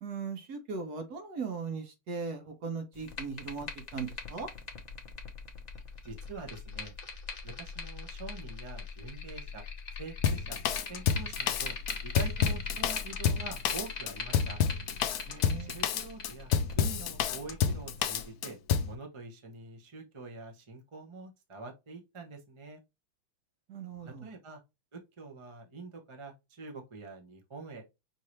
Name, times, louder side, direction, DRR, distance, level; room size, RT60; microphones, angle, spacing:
voice 1, 0.0-4.5 15.3-15.7 23.7-24.3, right 5 dB, 55° right, 1.4 m, -38 dB
sound 1, 2.9-18.2, left 4 dB, 45° left, 0.5 m, -41 dB
voice 2, 6.0-6.9 7.4-9.6 10.0-10.6 10.9-11.8 12.0-14.6 15.6-18.6 18.8-22.8 24.1-24.6 24.9-27.8, right 4 dB, 30° right, 0.5 m, -45 dB
Drum kit, 10.2-18.9, left 8 dB, 70° left, 0.9 m, -29 dB
5.5 x 2.7 x 3.1 m
omnidirectional pair, 2.2 m